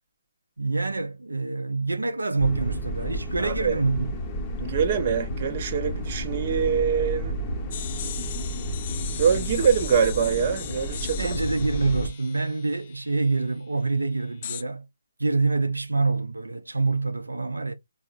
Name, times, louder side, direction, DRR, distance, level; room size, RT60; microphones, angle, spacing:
voice 1, 0.6-4.2 11.2-14.9 15.2-17.7, right 3 dB, 85° right, 0.5 m, -26 dB
sound 1, 2.4-12.1, right 1 dB, 15° left, 0.8 m, -31 dB
voice 2, 3.4-3.8 4.6-7.3 9.2-11.3, right 6 dB, 35° right, 0.6 m, -24 dB
sound 2, 7.7-13.4 14.4-14.6, left 10 dB, 35° left, 0.4 m, -38 dB
4.4 x 2.0 x 2.4 m
figure-of-eight pair, 145°, 0 cm